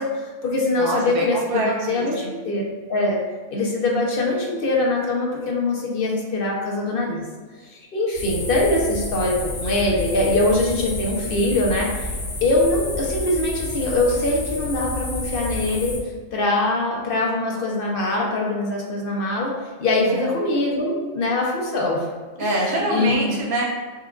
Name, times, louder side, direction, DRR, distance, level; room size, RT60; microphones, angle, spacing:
voice 1, 0.0-2.6 2.9-3.2 3.5-7.2 7.6-12.1 12.4-16.0 16.3-19.5 19.8-22.1 22.4-22.5 22.9-23.2, left 2 dB, 50° left, -2 dB, 0.9 m, -23 dB
voice 2, 0.8-2.3 20.1-20.3 22.4-23.6, right 1 dB, 50° right, -4 dB, 1.0 m, -25 dB
sound 1, 8.1-16.0, left 2 dB, 75° left, 1.1 m, -30 dB
5.8 x 2.4 x 2.4 m, 1.4 s
omnidirectional pair, 1.3 m